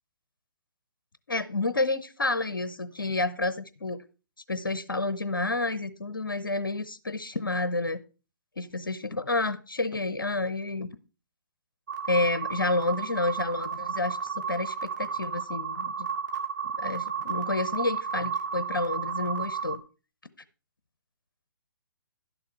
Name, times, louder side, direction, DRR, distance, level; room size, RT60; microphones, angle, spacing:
voice 1, 1.3-4.0 4.5-8.0 8.6-11.0 12.1-16.1 16.8-19.8, left 2 dB, 70° left, 14 dB, 0.9 m, -29 dB
sound 1, 11.9-19.8, right 6 dB, 55° right, 2.0 m, -33 dB
11.5 x 6.8 x 4.5 m, 0.34 s
figure-of-eight pair, 130°, 12 cm